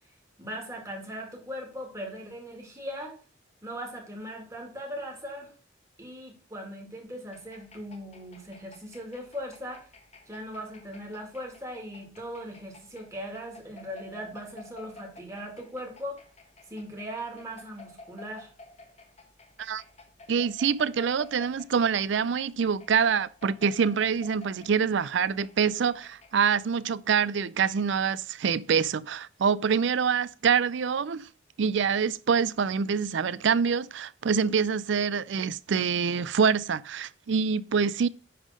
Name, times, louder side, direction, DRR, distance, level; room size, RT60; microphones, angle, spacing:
voice 1, 0.4-3.2 3.6-5.5 6.0-9.8 10.3-16.2 16.7-18.5, equal, 15° right, 2.1 m, -39 dB
sound 1, 7.3-26.6, left 2 dB, 30° left, 1.2 m, -52 dB
voice 2, 20.3-31.3 31.6-38.1, right 6 dB, 65° right, 0.4 m, -25 dB
10.0 x 3.7 x 6.3 m
head